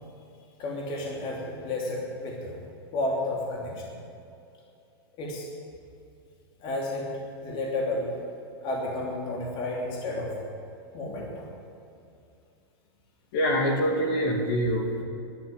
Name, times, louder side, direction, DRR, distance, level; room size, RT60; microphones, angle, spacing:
voice 1, 0.6-2.6 2.9-3.9 5.2-5.5 6.6-7.1 7.4-8.1 8.6-10.4 10.9-11.4, left 2 dB, 40° left, -2 dB, 3.2 m, -31 dB
voice 2, 13.3-15.0, equal, 60° left, 0 dB, 2.7 m, -25 dB
11.5 x 11.0 x 9.0 m, 2.6 s
hypercardioid pair, 125°, 13 cm